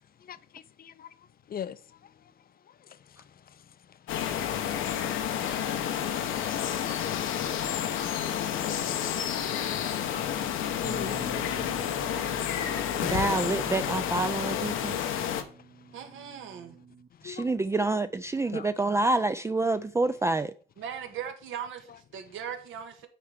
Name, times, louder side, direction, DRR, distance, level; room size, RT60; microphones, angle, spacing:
voice 1, 0.2-1.1 1.5-2.1 2.9-3.2 3.5-3.6 8.6-8.8 10.8-11.2 17.2-17.6 18.5-18.7, left 9 dB, 50° left, 0.6 m, -41 dB
sound 1, 4.1-15.4, left 9 dB, 85° left, 1.0 m, -30 dB
Bass guitar, 10.8-17.1, right 6 dB, 45° right, 1.1 m, -48 dB
voice 2, 13.0-15.0 17.2-20.5, right 2 dB, 15° right, 0.4 m, -27 dB
voice 3, 15.9-16.8 20.8-23.1, right 8 dB, 80° right, 1.6 m, -39 dB
9.1 x 4.4 x 5.1 m
cardioid pair, 90°, 20 cm